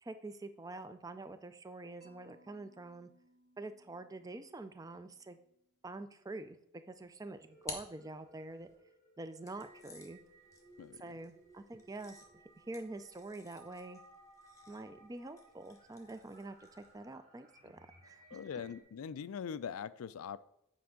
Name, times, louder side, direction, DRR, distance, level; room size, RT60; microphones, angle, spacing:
voice 1, 0.0-3.1 3.6-5.4 5.8-6.6 6.9-8.7 9.2-10.2 11.0-12.2 12.7-14.0 14.7-17.8 18.1-18.2, right 2 dB, 15° right, 10 dB, 0.4 m, -46 dB
Mallet percussion, 2.0-6.0, right 1 dB, 85° right, 2.3 m, -69 dB
sound 1, 6.9-8.7 9.4-17.0, left 3 dB, 15° left, 1.0 m, -54 dB
sound 2, 7.3-18.8, right 1 dB, 65° right, 2.7 m, -62 dB
voice 2, 18.3-20.4, left 7 dB, 75° left, 16 dB, 0.4 m, -42 dB
8.4 x 5.2 x 3.7 m, 0.79 s
head